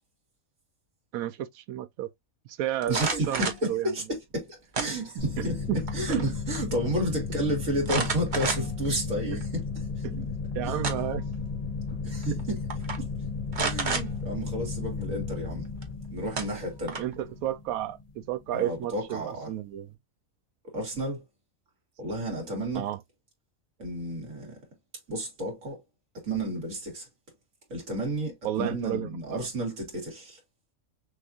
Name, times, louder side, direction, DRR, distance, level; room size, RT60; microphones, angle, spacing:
voice 1, 1.1-2.1 2.5-3.0 3.3-3.9 5.4-5.8 6.1-6.2 10.0-10.3 10.5-11.2 12.3-12.4 17.0-19.9 22.7-23.0 28.4-29.5, right 12 dB, 90° right, 1.0 m, -32 dB
sound 1, 2.8-3.7 4.7-5.4 5.8-6.3 6.5-6.6 7.9-8.9 9.4-9.5 10.5-11.2 12.2-12.4 12.7-13.0 13.5-14.1 15.8-15.9 16.4-17.2, right 4 dB, 40° right, 1.0 m, -31 dB
voice 2, 2.9-4.0 4.3-5.6 5.9-9.7 10.0-10.1 10.6-10.8 12.0-12.6 13.0-13.1 13.6-15.7 16.1-17.0 18.5-19.5 20.7-21.2 22.0-22.8 23.8-24.6 25.1-25.8 26.2-27.1 27.7-30.4, right 1 dB, 65° right, 2.4 m, -31 dB
sound 2, 5.2-18.4, left 5 dB, 40° left, 0.6 m, -34 dB
6.2 x 2.4 x 2.7 m
omnidirectional pair, 1.5 m